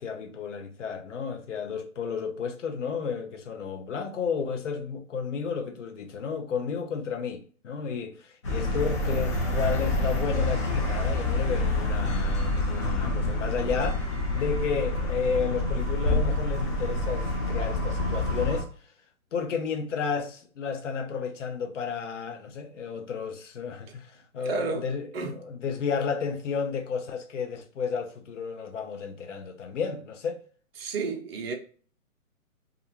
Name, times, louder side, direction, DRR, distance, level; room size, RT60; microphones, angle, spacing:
voice 1, 0.0-18.7 19.3-30.4, left 6 dB, 55° left, 0.7 m, -32 dB
sound 1, 8.4-18.6, left 1 dB, 20° left, 0.5 m, -27 dB
voice 2, 24.4-24.9 25.1-25.4 30.8-31.5, right 4 dB, 45° right, 0.7 m, -31 dB
2.4 x 2.4 x 2.8 m
hypercardioid pair, 135°, 43 cm